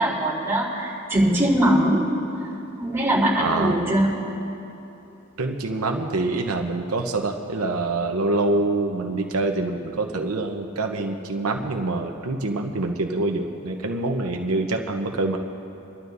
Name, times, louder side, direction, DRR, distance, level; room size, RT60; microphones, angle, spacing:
voice 1, 0.0-2.1 2.8-4.1, right 1 dB, 10° right, -7 dB, 3.6 m, -21 dB
voice 2, 3.4-3.8 5.4-15.4, right 2 dB, 85° right, 3 dB, 0.9 m, -25 dB
29.5 x 12.0 x 2.7 m, 3.0 s
head